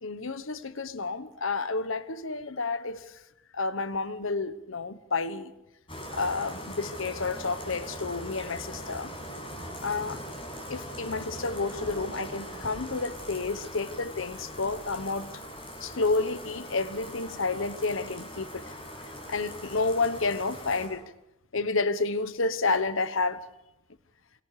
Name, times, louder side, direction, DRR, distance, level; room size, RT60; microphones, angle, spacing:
voice 1, 0.0-3.2 3.5-5.5 6.1-9.1 9.8-10.2 10.7-15.3 15.8-18.8 19.0-21.0 21.5-23.5, left 3 dB, 65° left, 1.2 m, -30 dB
Bathtub (filling or washing), 5.9-20.9, equal, 25° left, 7.0 m, -41 dB
28.5 x 23.5 x 5.0 m
head